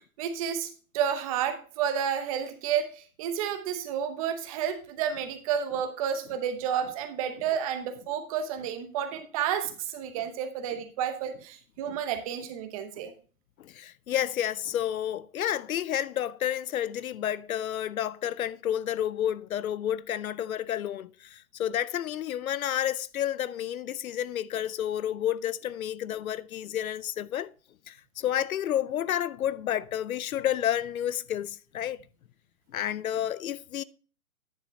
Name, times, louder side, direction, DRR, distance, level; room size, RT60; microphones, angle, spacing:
voice 1, 0.2-13.1, right 8 dB, 25° right, 0.8 m, -31 dB
voice 2, 13.6-27.5 27.9-32.0 32.7-33.8, left 11 dB, 70° left, 0.6 m, -30 dB
10.5 x 6.4 x 3.1 m
hypercardioid pair, 140°, 44 cm